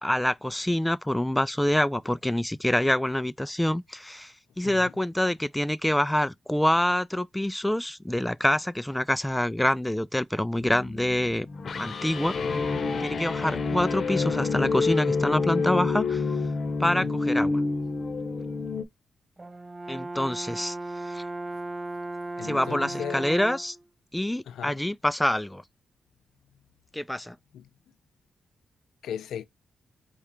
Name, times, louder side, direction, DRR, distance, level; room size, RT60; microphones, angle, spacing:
voice 1, 0.0-11.5 11.8-12.3 13.0-16.2 16.8-17.6 19.9-20.8 21.0-21.2 22.4-23.8 24.1-25.6 26.9-27.4, left 1 dB, 10° left, 0.3 m, -26 dB
sound 1, 10.6-18.8, left 4 dB, 55° left, 0.8 m, -28 dB
voice 2, 16.8-17.1 22.4-23.3 24.5-24.8 27.5-27.7 29.0-29.4, left 9 dB, 80° left, 0.4 m, -37 dB
Brass instrument, 19.4-23.8, right 2 dB, 30° right, 0.7 m, -36 dB
4.8 x 2.3 x 4.2 m
supercardioid pair, 55°, 0 cm